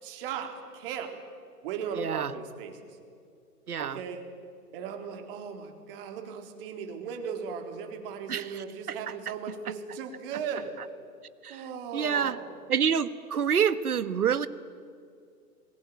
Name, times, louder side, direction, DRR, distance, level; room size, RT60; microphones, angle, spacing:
voice 1, 0.0-1.1 1.6-3.0 3.8-4.3 4.7-10.7 11.5-12.5, right 6 dB, 35° right, 4 dB, 3.9 m, -37 dB
voice 2, 2.0-2.3 3.7-4.0 8.3-8.4 11.4-11.6 11.9-12.4 12.7-14.5, right 7 dB, 65° right, 14 dB, 1.5 m, -27 dB
26.5 x 21.5 x 9.2 m, 2.3 s
figure-of-eight pair, 125°, 47 cm